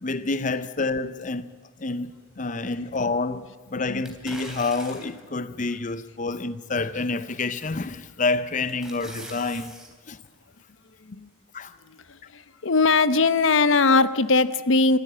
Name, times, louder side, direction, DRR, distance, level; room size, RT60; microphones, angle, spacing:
voice 1, 0.0-1.5 1.8-2.1 2.4-3.4 3.7-9.7 10.1-10.2 11.5-11.8, left 3 dB, 40° left, 0.6 m, -28 dB
sound 1, 4.0-5.3 5.9-6.0 7.6-7.9 8.3-9.9 10.2-10.3, right 1 dB, 5° right, 3.5 m, -42 dB
voice 2, 11.9-15.0, left 3 dB, 70° left, 0.8 m, -21 dB
25.5 x 13.5 x 8.6 m
head